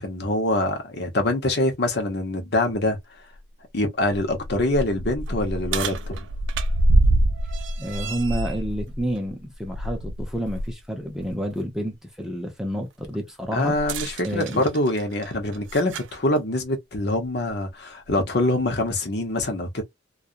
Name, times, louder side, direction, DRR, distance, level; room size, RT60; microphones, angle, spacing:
voice 1, 0.0-3.0 3.7-6.3 13.5-19.8, left 1 dB, 55° left, 0.8 m, -24 dB
sound 1, 2.7-2.8 3.3-3.4 4.0-10.7 11.1-11.3 13.7-16.2 17.2-17.3 18.1-18.2, right 1 dB, 75° right, 0.4 m, -26 dB
voice 2, 7.8-13.8 14.2-14.6, equal, 5° right, 0.6 m, -29 dB
2.3 x 2.1 x 2.5 m
head